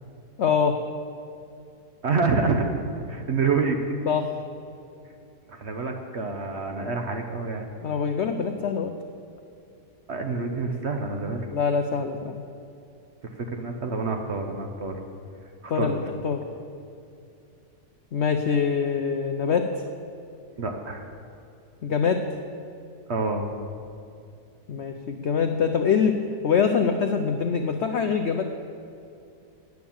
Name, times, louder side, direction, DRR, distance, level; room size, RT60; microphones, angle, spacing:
voice 1, 0.4-0.8 4.1-4.3 7.8-8.9 11.5-12.4 15.7-16.4 18.1-19.7 21.8-22.3 24.7-26.2 26.4-28.4, left 6 dB, 80° left, 6 dB, 0.6 m, -24 dB
voice 2, 2.0-2.7 3.1-3.8 5.5-7.7 10.1-11.5 13.2-15.0 15.6-15.9 20.6-21.1 23.1-23.5, right 4 dB, 50° right, 4 dB, 0.9 m, -27 dB
9.4 x 9.2 x 7.1 m, 2.5 s
omnidirectional pair, 1.9 m